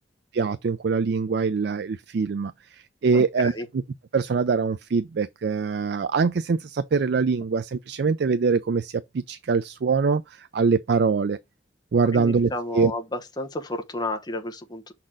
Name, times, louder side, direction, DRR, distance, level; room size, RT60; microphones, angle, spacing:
voice 1, 0.3-3.5 4.1-11.4 11.9-12.9, right 5 dB, 60° right, 0.4 m, -23 dB
voice 2, 12.1-14.9, left 1 dB, 25° left, 0.9 m, -32 dB
6.2 x 4.1 x 3.7 m
head